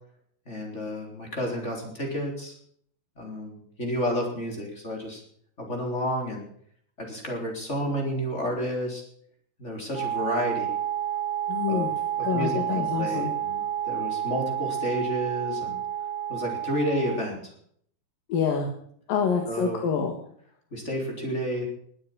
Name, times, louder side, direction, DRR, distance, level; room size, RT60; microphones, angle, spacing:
voice 1, 0.5-2.5 3.2-5.2 5.6-6.4 7.0-9.0 9.6-10.7 11.7-11.9 12.2-15.8 16.3-17.4 19.5-19.8 20.7-21.6, equal, 20° left, 0 dB, 4.2 m, -31 dB
Wind instrument woodwind instrument, 9.9-17.4, right 11 dB, 80° right, 4.5 m, -30 dB
voice 2, 11.5-11.9 12.2-13.3 18.3-18.7 19.1-20.1, left 6 dB, 80° left, 3 dB, 3.4 m, -26 dB
21.5 x 8.7 x 6.3 m, 0.63 s
omnidirectional pair, 4.0 m